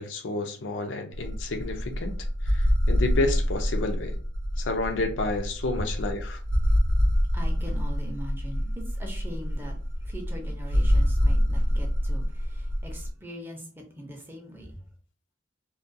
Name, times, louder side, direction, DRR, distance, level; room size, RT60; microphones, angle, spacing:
voice 1, 0.0-2.1 2.4-4.1 4.6-6.4, left 2 dB, 90° left, 0.5 m, -30 dB
sound 1, 1.1-13.1, equal, 65° right, 0.5 m, -26 dB
voice 2, 7.3-9.7 10.0-14.8, equal, 10° right, 0.5 m, -41 dB
2.3 x 2.2 x 2.6 m
head